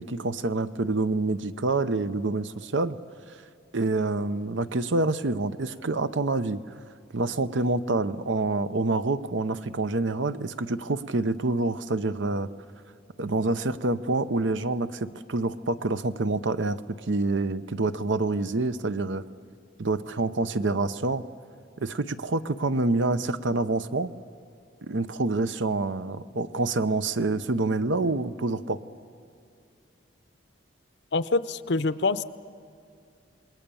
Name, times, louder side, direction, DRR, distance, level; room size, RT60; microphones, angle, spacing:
voice 1, 0.0-3.0 3.7-6.6 7.1-12.5 13.2-16.8 17.1-19.2 19.8-21.2 21.8-24.1 24.9-28.8, right 2 dB, 80° right, 12 dB, 0.8 m, -27 dB
voice 2, 31.1-32.2, left 3 dB, 65° left, 14 dB, 0.7 m, -25 dB
27.5 x 21.0 x 7.1 m, 2.4 s
head